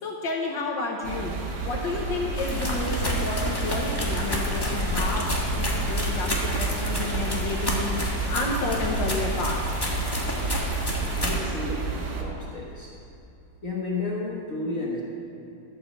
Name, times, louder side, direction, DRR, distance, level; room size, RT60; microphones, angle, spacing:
voice 1, 0.0-1.3 1.6-9.8, left 3 dB, 65° left, 0 dB, 1.7 m, -31 dB
sound 1, 1.0-12.2, right 4 dB, 50° right, 1.5 m, -31 dB
sound 2, 2.4-11.4, left 1 dB, 15° left, 1.4 m, -29 dB
voice 2, 11.1-12.9 13.6-15.0, left 3 dB, 45° left, -4 dB, 1.6 m, -32 dB
12.5 x 7.7 x 7.3 m, 2.8 s
omnidirectional pair, 2.2 m